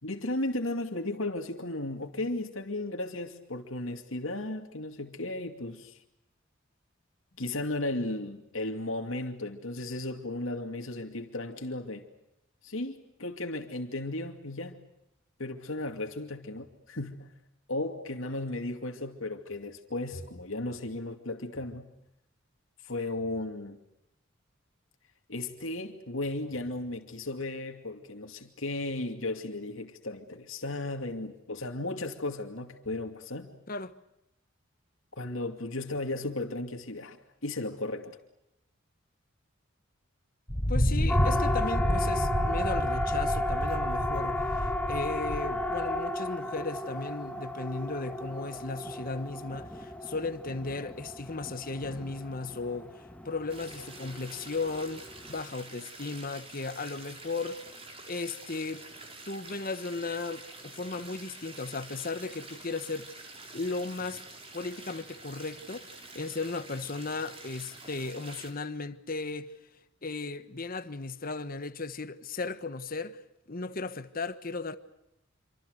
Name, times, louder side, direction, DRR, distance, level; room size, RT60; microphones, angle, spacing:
voice 1, 0.0-6.0 7.4-12.0 12.6-14.8 15.4-17.3 17.7-21.9 22.8-23.8 25.3-33.5 35.2-37.2 37.4-38.2, left 2 dB, 75° left, 2.5 m, -35 dB
Thunder, 40.5-46.0, equal, 20° left, 4.1 m, -29 dB
voice 2, 40.7-57.6 58.0-58.9 59.3-63.1 63.5-64.2 64.5-69.5 70.0-73.2 73.5-74.8, left 3 dB, 45° left, 1.4 m, -36 dB
Siren, 41.1-55.4, left 1 dB, 5° left, 1.5 m, -34 dB
sound 1, 53.5-68.5, right 2 dB, 30° right, 4.3 m, -47 dB
27.5 x 25.5 x 6.6 m
head